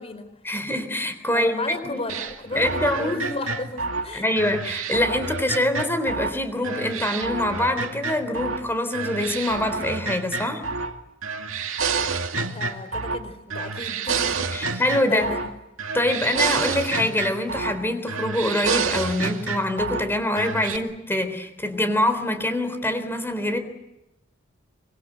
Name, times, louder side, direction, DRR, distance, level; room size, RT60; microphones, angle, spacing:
voice 1, 0.4-1.5 1.8-2.0 2.6-3.2 4.1-10.6 14.5-15.3 15.9-23.6, left 1 dB, 10° left, 8 dB, 3.8 m, -24 dB
voice 2, 1.3-4.2 12.5-14.7 15.1-15.5, left 2 dB, 30° left, 10 dB, 4.7 m, -34 dB
sound 1, 2.1-6.4 6.6-8.6 8.9-11.0 11.2-13.2 13.5-15.5 15.8-17.8 18.1-20.1 20.4-20.8, right 4 dB, 90° right, 2.3 m, -28 dB
25.5 x 24.5 x 8.0 m, 0.89 s
head